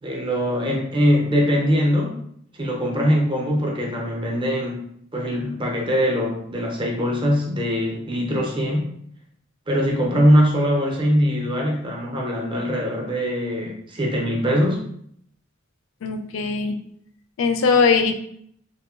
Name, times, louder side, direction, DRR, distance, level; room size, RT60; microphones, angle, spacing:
voice 1, 0.0-2.2 2.5-4.8 5.1-8.9 9.7-14.8, equal, 25° right, -1 dB, 0.5 m, -22 dB
voice 2, 16.0-16.8 17.4-18.2, left 5 dB, 65° left, 6 dB, 0.3 m, -20 dB
2.9 x 2.1 x 2.3 m, 0.68 s
head